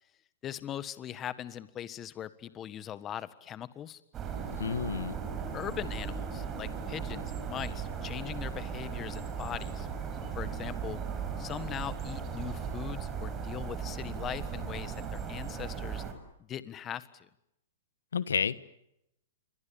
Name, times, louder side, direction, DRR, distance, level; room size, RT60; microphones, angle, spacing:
voice 1, 0.4-4.0 5.5-9.9 10.3-11.0 11.4-16.0 16.5-17.3, left 10 dB, 25° left, 14 dB, 1.6 m, -40 dB
sound 1, 4.1-16.1, right 6 dB, 25° right, 5.7 m, -37 dB
voice 2, 4.6-5.1 18.1-18.5, left 6 dB, 85° left, 15 dB, 1.4 m, -30 dB
28.5 x 24.5 x 7.2 m, 0.82 s
hypercardioid pair, 130°, 0 cm